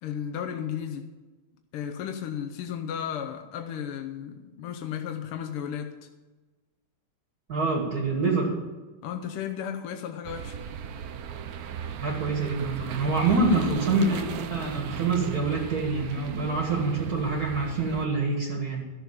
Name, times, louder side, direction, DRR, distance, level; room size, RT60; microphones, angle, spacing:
voice 1, 0.0-1.1 1.7-6.0 9.0-10.6 13.5-13.8, left 8 dB, 85° left, 4 dB, 1.8 m, -34 dB
voice 2, 7.5-8.5 12.0-18.8, right 3 dB, 45° right, -1 dB, 2.3 m, -26 dB
sound 1, 10.2-18.1, right 8 dB, 70° right, 0.8 m, -36 dB
13.0 x 6.9 x 7.3 m, 1.2 s
omnidirectional pair, 2.4 m